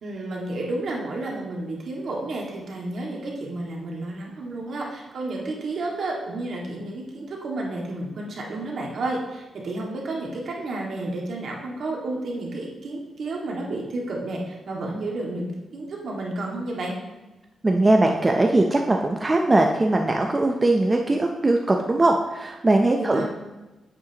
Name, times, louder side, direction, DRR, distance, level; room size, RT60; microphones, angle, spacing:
voice 1, 0.0-16.9 23.0-23.3, right 2 dB, 60° right, -1 dB, 1.8 m, -31 dB
voice 2, 17.6-23.3, right 2 dB, 20° right, 2 dB, 0.6 m, -20 dB
8.6 x 7.7 x 2.9 m, 1.1 s
cardioid pair, 115°, 0 cm